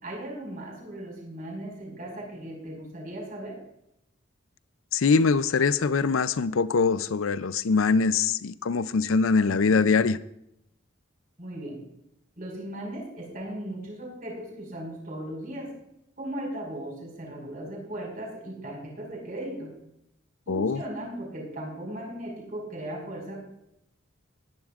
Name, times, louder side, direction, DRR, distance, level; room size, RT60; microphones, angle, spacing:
voice 1, 0.0-3.6 11.4-11.8 12.4-15.7 16.2-19.7 20.4-23.4, right 1 dB, 40° right, -1 dB, 5.1 m, -37 dB
voice 2, 4.9-10.2 20.5-20.8, left 4 dB, 80° left, 15 dB, 0.5 m, -23 dB
21.0 x 10.5 x 2.5 m, 0.79 s
head